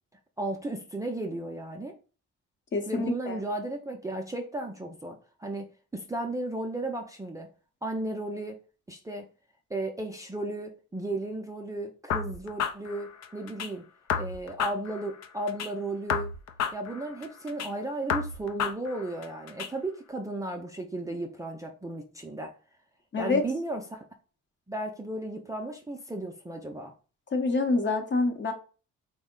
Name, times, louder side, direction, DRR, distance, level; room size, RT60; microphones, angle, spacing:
voice 1, 0.4-2.0 2.9-5.6 5.9-7.5 7.8-8.6 8.9-9.3 9.7-13.9 14.2-16.3 16.7-22.5 23.2-24.0 24.7-26.9, right 2 dB, 10° right, 0.4 m, -34 dB
voice 2, 2.7-3.4 23.1-23.4 27.3-28.5, left 3 dB, 40° left, 0.8 m, -26 dB
sound 1, 12.1-13.7 14.1-15.7 16.1-17.7 18.1-19.7, left 7 dB, 60° left, 0.5 m, -32 dB
3.5 x 2.1 x 3.6 m
cardioid pair, 90°, 30 cm